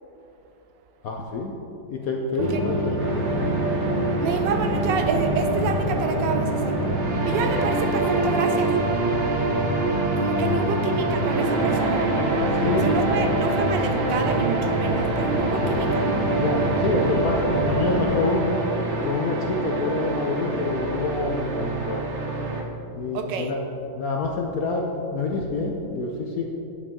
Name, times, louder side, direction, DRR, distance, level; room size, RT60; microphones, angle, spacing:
voice 1, 1.0-1.6 1.9-3.0 10.4-10.7 12.6-13.0 16.4-18.6 19.0-22.1 22.9-23.6 23.9-24.9 25.1-26.6, left 3 dB, 65° left, 0 dB, 0.9 m, -27 dB
sound 1, 2.4-18.2, right 1 dB, 25° right, 1.3 m, -26 dB
voice 2, 2.5-3.0 4.2-6.8 7.2-8.7 10.2-12.1 12.8-16.1 23.1-23.5, right 5 dB, 70° right, 6 dB, 1.2 m, -28 dB
sound 2, 3.0-22.6, right 2 dB, 50° right, 0.8 m, -27 dB
9.8 x 8.5 x 3.7 m, 3.0 s
omnidirectional pair, 2.2 m